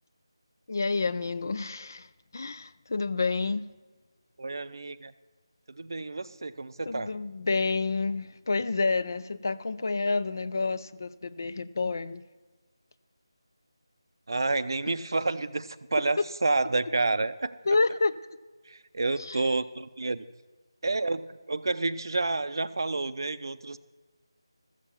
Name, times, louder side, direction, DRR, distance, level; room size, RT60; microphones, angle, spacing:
voice 1, 0.7-2.1 2.3-3.6 6.9-12.2 16.2-16.3 17.7-18.2 19.2-19.4, left 3 dB, 40° left, 15 dB, 0.4 m, -29 dB
voice 2, 4.4-5.1 5.7-7.1 14.3-17.6 18.7-20.2 20.8-23.8, right 3 dB, 50° right, 14 dB, 0.6 m, -29 dB
13.5 x 7.4 x 7.0 m, 1.3 s
figure-of-eight pair, 175°, 3 cm